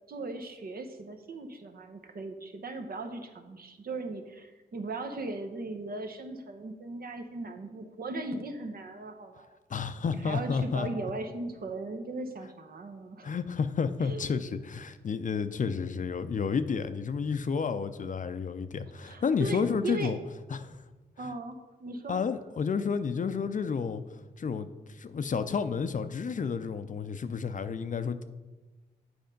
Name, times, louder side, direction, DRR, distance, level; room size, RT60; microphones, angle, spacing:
voice 1, 0.1-9.6 10.1-13.3 14.0-14.3 19.0-20.1 21.2-22.2, right 2 dB, 60° right, 6 dB, 0.9 m, -38 dB
voice 2, 9.7-10.9 13.2-20.2 20.5-20.8 21.2-21.3 22.1-24.0 24.4-24.7 25.0-28.2, left 5 dB, 45° left, 11 dB, 0.5 m, -31 dB
7.8 x 4.3 x 5.2 m, 1.2 s
supercardioid pair, 45°, 18 cm